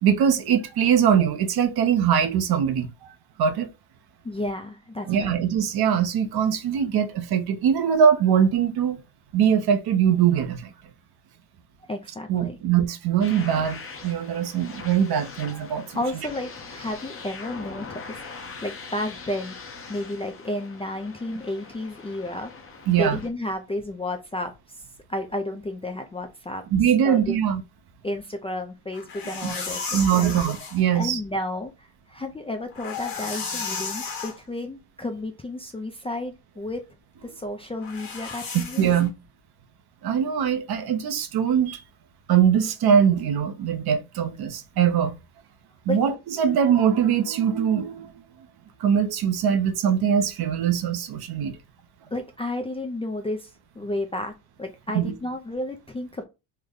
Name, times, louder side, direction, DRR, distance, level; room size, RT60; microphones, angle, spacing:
voice 1, 0.0-2.9 3.4-3.7 5.1-9.0 9.3-10.7 12.3-13.8 14.0-16.0 22.9-23.2 26.7-27.6 29.4-29.5 29.9-31.2 38.5-39.1 40.0-41.8 42.3-45.1 45.9-48.1 48.8-51.6 54.9-55.1, right 8 dB, 55° right, 0.7 m, -22 dB
voice 2, 4.2-5.3 11.9-12.6 15.9-18.2 18.6-19.6 19.9-22.5 23.0-24.8 25.1-26.6 27.0-27.4 28.0-30.3 30.9-36.8 37.2-38.9 45.9-46.0 52.1-53.5 53.8-56.2, left 1 dB, 15° left, 0.4 m, -32 dB
sound 1, 13.2-23.3, left 4 dB, 30° left, 0.8 m, -42 dB
sound 2, 28.9-30.8 32.6-34.4 37.8-39.1, left 5 dB, 50° left, 1.5 m, -33 dB
3.3 x 2.1 x 3.7 m
cardioid pair, 110°, 46 cm